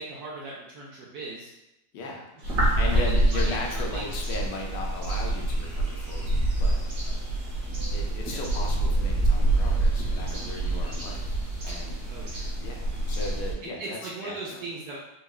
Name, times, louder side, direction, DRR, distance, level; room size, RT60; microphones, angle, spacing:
voice 1, 0.0-1.5 2.4-2.5 2.9-3.0 3.3-4.1 8.3-8.4 12.1-12.5 13.6-15.0, right 3 dB, 70° right, -4 dB, 1.0 m, -38 dB
voice 2, 1.9-2.3 2.8-6.3 6.6-6.8 7.9-11.3 11.6-12.0 12.6-14.6, left 2 dB, 75° left, 0 dB, 1.3 m, -36 dB
sound 1, 2.4-13.5, right 2 dB, 55° right, 1.3 m, -26 dB
4.7 x 2.2 x 2.3 m, 0.93 s
omnidirectional pair, 2.0 m